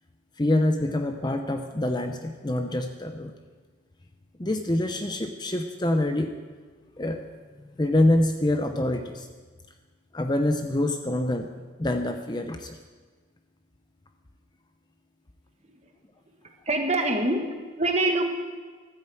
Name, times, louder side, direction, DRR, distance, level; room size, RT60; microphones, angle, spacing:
voice 1, 0.4-3.3 4.4-6.3 7.0-7.3 7.8-9.3 10.1-11.5 11.8-12.8, left 1 dB, 20° left, 6 dB, 0.7 m, -25 dB
voice 2, 16.7-18.3, right 2 dB, 30° right, 3 dB, 1.4 m, -25 dB
13.0 x 9.1 x 7.8 m, 1.4 s
head